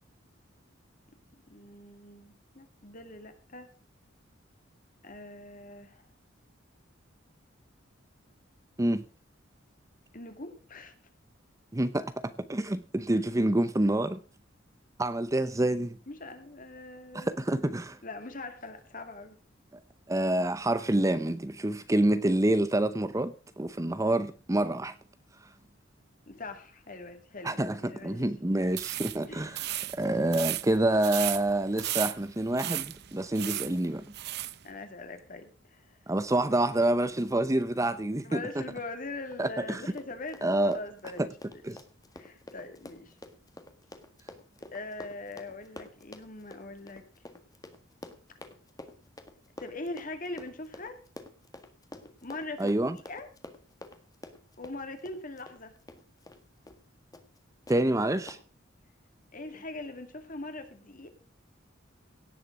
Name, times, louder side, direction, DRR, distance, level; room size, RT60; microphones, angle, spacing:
voice 1, 1.5-3.7 5.0-6.0 10.1-10.9 16.1-17.3 18.0-19.4 26.3-28.3 29.3-29.7 33.4-33.7 34.6-36.0 38.2-41.6 42.1-43.2 44.7-47.0 49.6-51.0 52.2-52.8 53.1-53.3 54.6-55.7 59.3-61.1, left 2 dB, 45° left, 2.3 m, -42 dB
voice 2, 11.7-12.1 12.5-14.2 15.0-16.0 17.1-18.0 20.1-24.9 27.4-29.6 30.0-34.0 36.1-38.4 39.4-39.8 40.4-40.8 41.2-41.3 41.6-41.8 52.6-53.0 57.7-58.4, right 1 dB, 15° right, 0.7 m, -27 dB
sound 1, 28.7-34.6, right 15 dB, 55° right, 0.6 m, -35 dB
Run, 39.8-56.4 56.7-56.8 57.1-57.4 57.7-57.8 58.3-58.4, left 2 dB, 20° left, 1.6 m, -48 dB
17.5 x 7.2 x 6.0 m
head